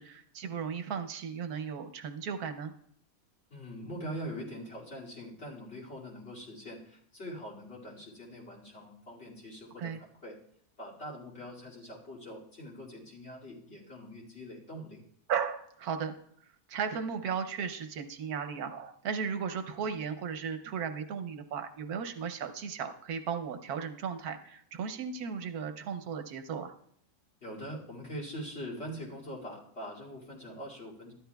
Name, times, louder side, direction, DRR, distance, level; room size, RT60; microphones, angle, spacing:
voice 1, 0.0-2.7 9.8-10.0 15.3-16.1 16.7-26.7, right 6 dB, 75° right, 7 dB, 1.3 m, -36 dB
voice 2, 3.5-9.9 10.2-10.4 10.8-15.0 27.4-31.1, equal, 45° left, -2 dB, 2.7 m, -43 dB
13.0 x 11.0 x 2.3 m, 0.68 s
omnidirectional pair, 1.6 m